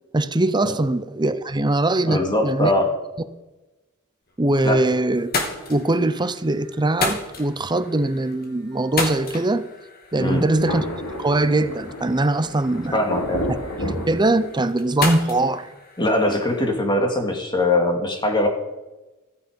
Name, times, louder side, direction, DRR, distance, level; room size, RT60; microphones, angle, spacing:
voice 1, 0.1-2.7 4.4-5.3 5.7-9.7 10.1-10.8 11.2-13.0 13.8-15.7, right 2 dB, 20° right, 0.7 m, -21 dB
voice 2, 2.1-2.9 4.6-4.9 10.2-10.5 12.9-13.5 16.0-18.5, left 1 dB, 20° left, 2.5 m, -21 dB
sound 1, 4.3-4.8 5.1-16.7, left 3 dB, 45° left, 2.8 m, -33 dB
Thunder, 10.1-14.9, equal, 85° left, 3.0 m, -31 dB
15.0 x 14.5 x 5.3 m
head